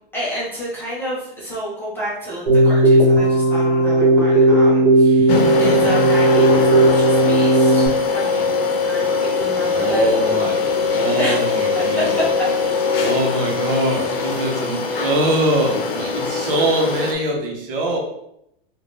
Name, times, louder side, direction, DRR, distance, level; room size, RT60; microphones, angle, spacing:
voice 1, 0.1-10.5 10.9-11.5 11.7-12.2, equal, 5° left, -8 dB, 0.5 m, -29 dB
Keyboard (musical), 2.5-7.9, right 2 dB, 45° right, 1.3 m, -15 dB
sound 1, 5.3-17.2, left 4 dB, 70° left, 0.7 m, -21 dB
voice 2, 9.6-10.6 10.9-12.2 13.0-18.0, right 1 dB, 65° right, 0 dB, 0.9 m, -22 dB
2.6 x 2.4 x 3.5 m, 0.78 s
supercardioid pair, 165°, 30 cm